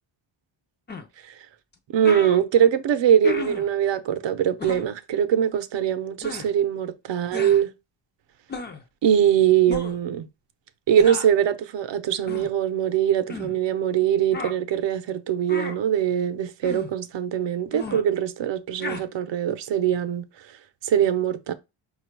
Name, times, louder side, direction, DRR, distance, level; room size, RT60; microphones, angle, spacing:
sound 1, 0.9-1.1 1.7-1.8 2.0-2.4 3.2-3.7 4.6-4.9 6.2-6.5 7.3-7.6 8.5-8.8 9.7-10.0 11.0-11.3 12.3-12.5 13.3-13.6 14.3-14.6 15.5-15.8 16.6-16.9 17.7-18.0 18.8-19.0, left 4 dB, 20° left, 0.5 m, -33 dB
voice 1, 1.9-7.7 9.0-10.3 10.9-20.2 20.8-21.5, right 9 dB, 60° right, 0.7 m, -22 dB
5.0 x 2.4 x 4.5 m
wide cardioid pair, 145°, 50 cm